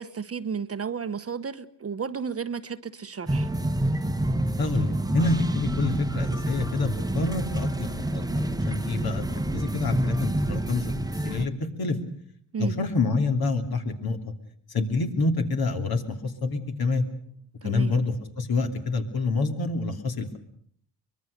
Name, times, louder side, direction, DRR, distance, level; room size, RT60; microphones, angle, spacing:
voice 1, 0.0-3.5 12.5-12.8 17.6-17.9, right 6 dB, 35° right, 12 dB, 1.0 m, -33 dB
sound 1, 3.3-11.5, right 1 dB, 10° right, 1.1 m, -27 dB
voice 2, 4.6-10.9 11.2-11.5 11.8-12.0 12.6-14.2 14.7-17.0 17.6-20.4, left 3 dB, 60° left, 5 dB, 3.0 m, -27 dB
24.0 x 22.0 x 6.7 m, 0.62 s
cardioid pair, 100°, 42 cm